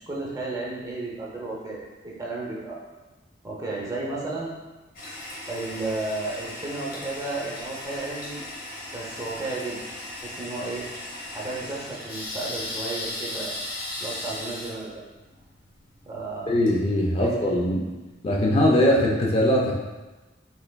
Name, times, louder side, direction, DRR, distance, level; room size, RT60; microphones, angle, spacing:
voice 1, 0.1-2.8 3.4-4.5 5.5-8.4 8.9-9.8 10.2-10.9 11.3-13.6 14.0-15.0 16.1-16.5 17.2-17.3, right 2 dB, 20° right, -3 dB, 0.6 m, -33 dB
Toilet flush, 5.0-17.6, left 1 dB, 55° left, 0.9 m, -37 dB
voice 2, 16.5-17.9 18.2-19.7, left 1 dB, 35° left, -2 dB, 0.4 m, -21 dB
3.3 x 3.3 x 2.2 m, 1.2 s
head